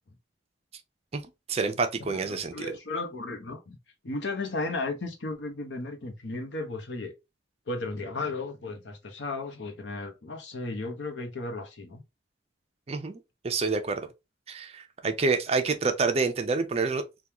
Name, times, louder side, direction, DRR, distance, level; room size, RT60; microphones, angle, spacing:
voice 1, 1.5-2.8 12.9-13.2 13.4-14.0 14.5-17.0, right 4 dB, 35° right, 0.5 m, -27 dB
voice 2, 2.0-3.8 4.0-7.1 7.7-12.0, left 2 dB, 80° left, 0.8 m, -35 dB
3.5 x 2.3 x 2.8 m
head